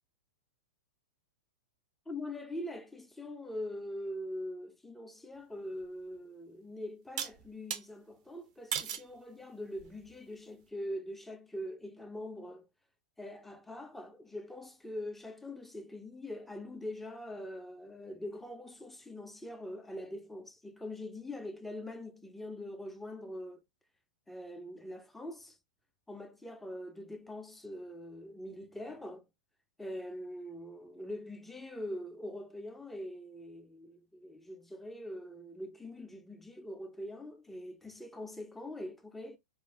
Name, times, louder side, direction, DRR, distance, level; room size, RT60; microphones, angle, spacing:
voice 1, 2.1-12.7 13.2-23.6 24.3-25.6 26.1-29.2 29.8-39.4, left 1 dB, 5° left, 0.4 m, -43 dB
sound 1, 5.8-5.9 7.2-7.8 8.7-9.1 9.8-10.2, right 9 dB, 55° right, 0.4 m, -37 dB
2.4 x 2.4 x 2.2 m
hypercardioid pair, 135°, 4 cm